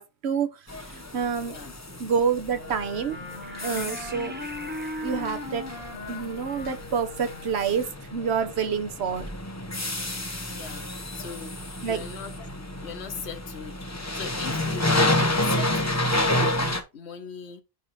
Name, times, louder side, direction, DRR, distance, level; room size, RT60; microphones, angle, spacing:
voice 1, 0.0-1.6 2.0-3.2 3.6-4.3 5.0-5.6 6.1-9.2 11.8-12.0, right 6 dB, 80° right, 1.2 m, -28 dB
sound 1, 0.7-16.8, left 1 dB, 15° left, 0.8 m, -30 dB
Wind instrument woodwind instrument, 2.6-7.9, left 2 dB, 65° left, 2.3 m, -38 dB
sound 2, 3.4-8.2, right 1 dB, 10° right, 0.9 m, -46 dB
voice 2, 10.5-10.9 11.1-12.4 12.8-17.6, left 6 dB, 85° left, 1.3 m, -39 dB
9.0 x 3.0 x 4.1 m
omnidirectional pair, 1.1 m